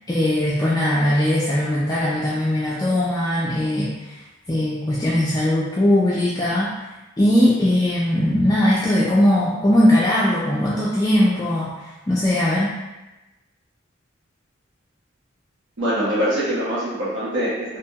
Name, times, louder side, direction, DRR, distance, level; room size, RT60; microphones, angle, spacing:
voice 1, 0.1-4.2 4.5-6.8 7.2-12.8, left 1 dB, 20° left, -7 dB, 0.3 m, -20 dB
voice 2, 15.8-17.8, equal, 80° right, -10 dB, 0.7 m, -23 dB
2.7 x 2.2 x 2.7 m, 1.0 s
head